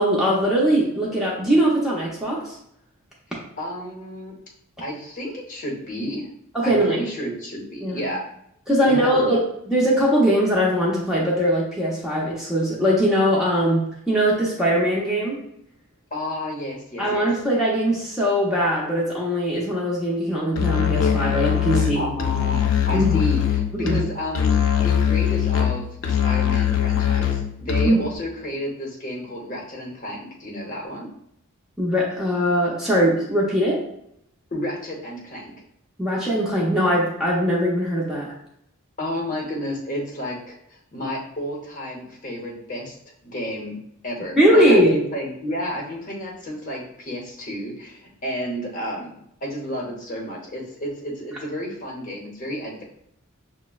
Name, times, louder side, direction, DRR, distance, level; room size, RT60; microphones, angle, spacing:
voice 1, 0.0-2.5 6.5-7.0 7.8-8.0 8.7-9.4 9.7-15.4 17.0-22.0 22.9-23.2 23.7-24.0 27.8-28.0 31.8-33.8 36.0-38.3 44.4-44.9, equal, ahead, -6 dB, 0.6 m, -21 dB
voice 2, 3.6-4.3 4.8-6.3 6.6-8.2 8.9-9.4 16.1-17.3 21.9-31.1 34.5-35.5 39.0-40.6 40.9-42.9 43.2-43.8 44.0-52.8, equal, 35° left, -2 dB, 0.8 m, -31 dB
Musical instrument, 20.6-28.1, left 9 dB, 65° left, 0.4 m, -22 dB
6.0 x 2.0 x 2.3 m, 0.74 s
head